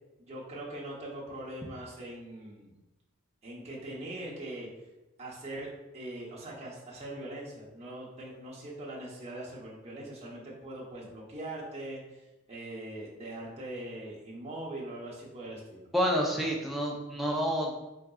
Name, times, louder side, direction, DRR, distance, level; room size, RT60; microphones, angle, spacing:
voice 1, 0.2-2.7 3.4-4.7 5.2-5.7 5.9-12.2 12.5-15.9, right 1 dB, 30° right, -5 dB, 0.8 m, -41 dB
voice 2, 15.9-17.7, equal, ahead, -3 dB, 0.5 m, -28 dB
3.9 x 3.6 x 2.3 m, 1.0 s
head